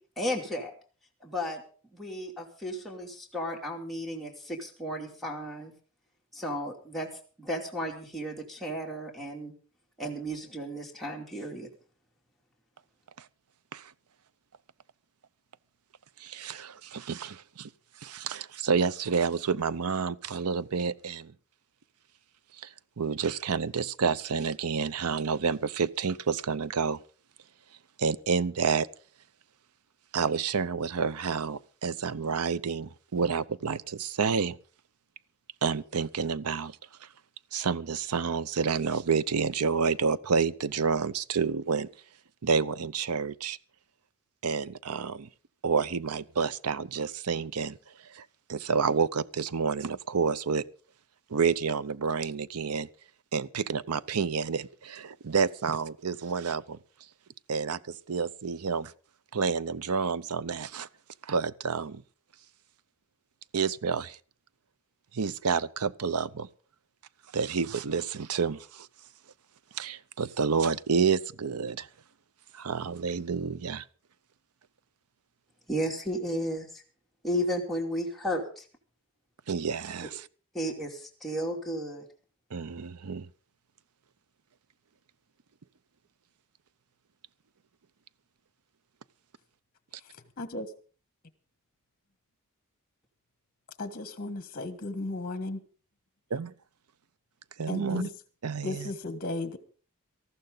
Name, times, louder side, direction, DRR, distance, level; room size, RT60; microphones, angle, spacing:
voice 1, 0.2-0.7 1.2-1.6 1.9-5.7 6.3-7.1 7.4-9.5 10.0-11.7 75.7-76.8 77.2-78.6 80.5-82.1, equal, ahead, 2.8 m, -33 dB
voice 2, 16.2-17.7 18.0-21.3 22.6-27.0 28.0-28.9 30.1-34.6 35.6-36.8 37.5-41.9 42.4-43.6 44.4-45.3 45.6-47.8 48.1-50.6 51.3-52.9 53.3-56.8 57.5-58.9 59.3-60.9 61.2-62.0 63.5-64.2 65.1-66.5 67.3-68.9 69.7-71.9 72.5-73.8 79.5-80.3 82.5-83.3 96.3-96.5 97.6-98.0 98.4-98.9, right 5 dB, 85° right, 0.7 m, -29 dB
voice 3, 93.8-95.6 97.7-98.1 98.6-99.6, left 2 dB, 40° left, 1.4 m, -34 dB
18.5 x 14.0 x 3.9 m
head